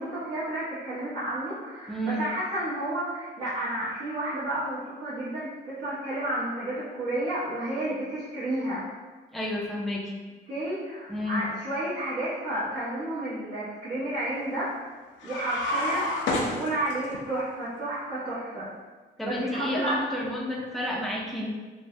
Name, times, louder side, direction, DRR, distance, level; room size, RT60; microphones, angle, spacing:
voice 1, 0.0-8.8 10.5-14.7 15.2-18.7 19.2-20.0, right 1 dB, 65° right, -12 dB, 1.0 m, -31 dB
voice 2, 1.9-2.2 9.3-10.2 11.1-11.4 19.2-21.5, equal, ahead, -3 dB, 0.5 m, -30 dB
sound 1, 15.2-17.2, left 1 dB, 70° left, 0.5 m, -29 dB
3.2 x 2.2 x 2.6 m, 1.3 s
cardioid pair, 90°, 20 cm